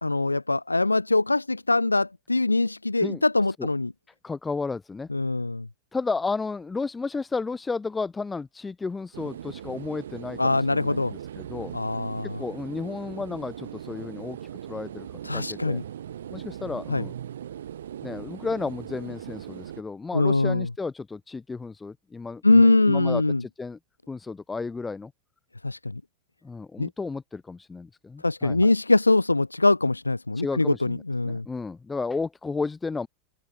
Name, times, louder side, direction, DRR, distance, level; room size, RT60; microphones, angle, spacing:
voice 1, 0.0-3.9 5.1-5.7 10.4-11.1 11.7-12.4 15.2-15.8 16.9-17.0 20.1-20.7 22.4-23.4 25.6-26.0 26.8-26.9 28.2-31.5, left 2 dB, 80° left, 0.3 m, -22 dB
voice 2, 4.2-5.1 5.9-11.7 12.2-15.1 15.3-15.8 16.3-17.1 18.0-23.8 24.1-25.1 26.4-28.7 30.4-33.1, left 4 dB, 10° left, 6.0 m, -33 dB
sound 1, 9.1-19.8, right 10 dB, 65° right, 4.6 m, -39 dB
open air
figure-of-eight pair, 90°, 0 cm